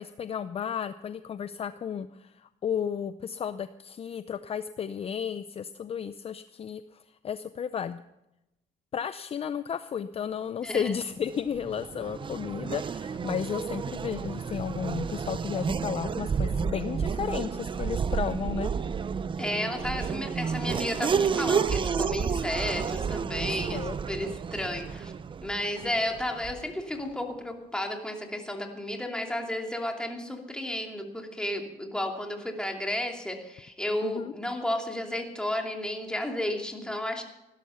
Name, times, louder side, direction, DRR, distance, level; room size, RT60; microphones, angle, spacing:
voice 1, 0.0-8.0 8.9-18.7 23.7-23.9 34.0-34.3, left 8 dB, 35° left, 12 dB, 0.6 m, -33 dB
voice 2, 10.6-10.9 19.4-25.1 25.4-37.2, left 1 dB, 5° left, 2 dB, 2.7 m, -32 dB
Race car auto racing / Accelerating revving vroom, 11.2-26.8, right 6 dB, 30° right, 0.6 m, -31 dB
16.5 x 12.0 x 5.7 m, 0.91 s
cardioid pair, 110°, 17 cm